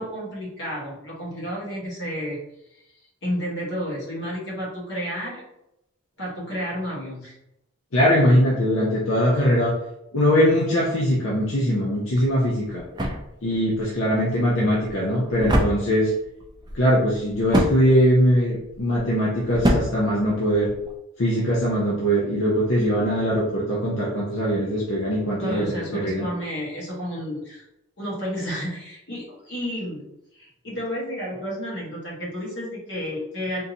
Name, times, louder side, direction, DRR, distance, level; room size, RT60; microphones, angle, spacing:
voice 1, 0.0-2.4 2.7-2.8 3.2-5.4 6.2-7.3 25.4-27.6 28.0-30.0 30.3-33.6, equal, 55° left, -5 dB, 1.4 m, -31 dB
voice 2, 7.9-9.7 10.1-12.8 13.4-16.1 16.7-20.7 21.2-26.3, equal, 75° left, -5 dB, 0.7 m, -21 dB
sound 1, 12.1-21.0, equal, 20° right, 0.4 m, -28 dB
3.8 x 2.6 x 2.7 m, 0.84 s
head